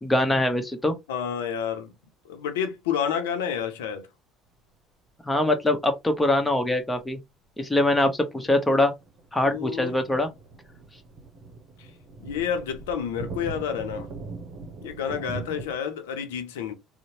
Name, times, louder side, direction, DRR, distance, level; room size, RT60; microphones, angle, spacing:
voice 1, 0.0-0.9 5.2-7.2 7.6-8.9 9.3-10.3, left 1 dB, 15° left, 1.0 m, -23 dB
voice 2, 1.1-1.9 2.3-4.0 9.4-9.9 12.2-14.1 14.8-16.7, left 8 dB, 80° left, 0.6 m, -29 dB
sound 1, 7.0-7.1 9.0-15.8, right 3 dB, 55° right, 0.8 m, -41 dB
2.8 x 2.1 x 2.7 m
hypercardioid pair, 65°, 0 cm